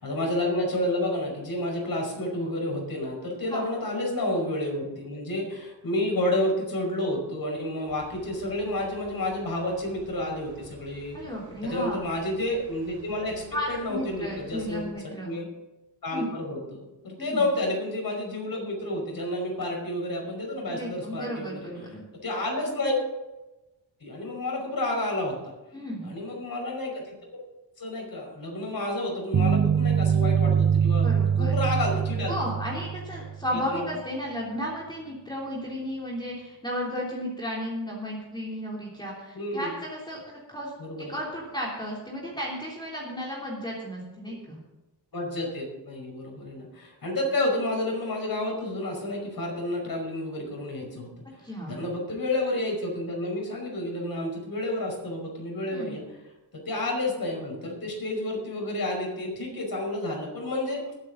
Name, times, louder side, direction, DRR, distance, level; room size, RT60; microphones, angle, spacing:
voice 1, 0.0-11.2 11.6-15.5 16.0-21.7 22.2-23.0 24.0-25.5 26.0-27.2 27.8-31.1 31.4-32.3 33.5-33.9 39.3-39.7 40.8-41.1 45.1-51.2 51.7-56.0 56.5-60.8, left 1 dB, 55° left, 0 dB, 5.4 m, -30 dB
sound 1, 7.9-14.9, right 2 dB, 85° right, 3.7 m, -51 dB
voice 2, 11.1-12.0 13.5-15.3 16.1-16.3 17.2-17.5 20.7-22.0 25.7-26.1 31.0-31.5 32.3-40.7 41.0-44.6 51.4-51.8 55.7-55.9, equal, 10° left, -4 dB, 3.2 m, -34 dB
sound 2, 29.3-33.5, right 7 dB, 40° right, 0.5 m, -23 dB
21.0 x 8.8 x 3.9 m, 1.0 s
wide cardioid pair, 95°, 43 cm